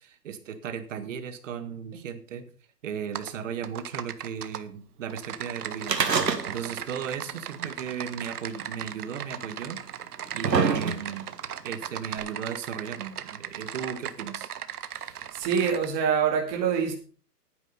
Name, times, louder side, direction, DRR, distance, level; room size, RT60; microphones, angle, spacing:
voice 1, 0.0-2.5 2.8-9.8 10.3-11.3 11.6-14.5, right 7 dB, 50° right, 11 dB, 1.7 m, -36 dB
Typing, 3.1-3.3 3.6-4.6 5.1-15.9, right 9 dB, 65° right, 1.1 m, -38 dB
sound 1, 5.8-6.9 7.1-7.2 8.2-8.3 9.2-9.3 10.0-11.3 12.2-12.3, right 5 dB, 90° right, 2.1 m, -25 dB
voice 2, 14.9-16.9, right 7 dB, 30° right, 2 dB, 2.4 m, -26 dB
10.5 x 9.4 x 5.6 m, 0.41 s
hypercardioid pair, 145°, 49 cm